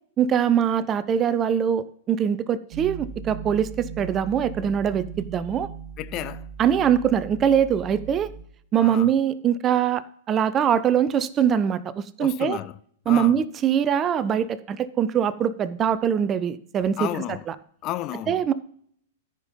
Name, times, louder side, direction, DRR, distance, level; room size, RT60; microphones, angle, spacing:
voice 1, 0.2-5.7 6.6-8.3 8.7-10.0 10.3-12.6 13.1-17.1 17.5-17.6 18.3-18.5, right 8 dB, 25° right, 0.6 m, -22 dB
sound 1, 2.7-8.4, right 6 dB, 40° right, 0.9 m, -38 dB
voice 2, 6.0-6.5 8.8-9.1 12.2-12.7 13.1-13.4 17.0-17.4 17.8-18.4, left 14 dB, 35° left, 0.4 m, -32 dB
14.0 x 5.3 x 5.3 m
figure-of-eight pair, 100°, 0 cm